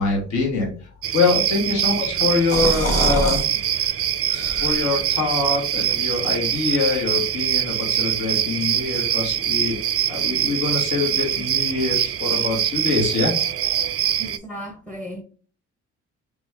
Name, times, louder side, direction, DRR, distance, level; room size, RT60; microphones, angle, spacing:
voice 1, 0.0-3.4 3.7-4.0 4.6-9.8 10.1-13.3, left 3 dB, 75° left, 1.3 m, -24 dB
sound 1, 1.0-14.4, right 10 dB, 50° right, 0.4 m, -23 dB
sound 2, 2.2-3.4 3.8-3.9 4.3-5.0, equal, 50° left, 1.4 m, -25 dB
voice 2, 3.3-3.6 14.2-15.2, equal, 5° left, 0.6 m, -36 dB
3.4 x 3.0 x 3.4 m
cardioid pair, 90°, 30 cm